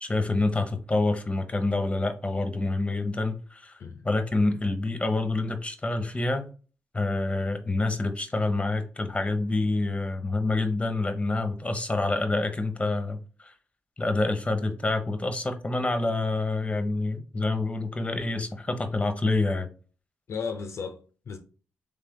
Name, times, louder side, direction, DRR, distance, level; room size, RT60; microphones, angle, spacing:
voice 1, 0.0-3.7 4.0-6.5 6.9-13.5 14.0-19.7, left 2 dB, 25° left, 1.0 m, -27 dB
voice 2, 20.3-21.4, left 5 dB, 65° left, 0.6 m, -35 dB
3.4 x 3.3 x 3.7 m
supercardioid pair, 45°, 5 cm